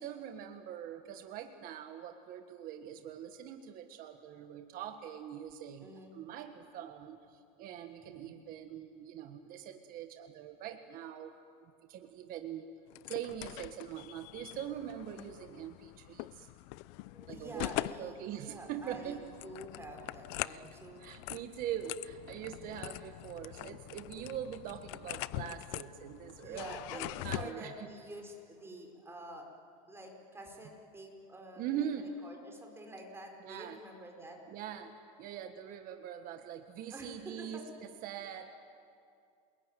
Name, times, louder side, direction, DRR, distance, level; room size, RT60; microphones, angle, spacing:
voice 1, 0.0-11.3 11.6-12.6 13.1-16.5 17.3-19.2 20.4-27.7 31.6-32.1 33.4-33.8 34.5-37.7 38.0-38.5, right 10 dB, 45° right, 6 dB, 1.6 m, -43 dB
voice 2, 5.8-6.2 8.0-8.3 13.0-13.1 17.0-21.1 21.3-21.4 26.4-29.5 29.9-31.9 32.2-34.4 36.9-37.6 38.3-38.5, right 1 dB, 10° right, 2 dB, 5.1 m, -48 dB
sound 1, 12.9-27.5, left 19 dB, 60° left, 0.7 m, -43 dB
28.5 x 21.0 x 9.3 m, 2.4 s
supercardioid pair, 130°, 19 cm